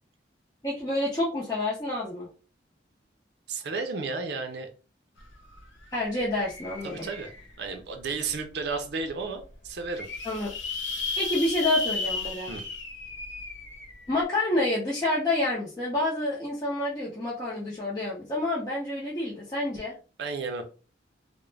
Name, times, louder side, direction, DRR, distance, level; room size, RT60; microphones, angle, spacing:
voice 1, 0.6-2.3 5.9-7.1 10.2-10.5 11.2-12.5 14.1-19.9, left 2 dB, 20° left, -7 dB, 0.6 m, -28 dB
voice 2, 3.5-4.7 6.8-7.3 7.6-10.1 12.5-12.6 20.2-20.6, right 4 dB, 60° right, 5 dB, 0.5 m, -33 dB
sound 1, 5.2-5.3 5.6-7.7 8.3-8.4 8.7-8.8 9.0-9.1 9.7-14.2, left 3 dB, 80° left, 0.8 m, -35 dB
2.4 x 2.1 x 3.1 m, 0.35 s
head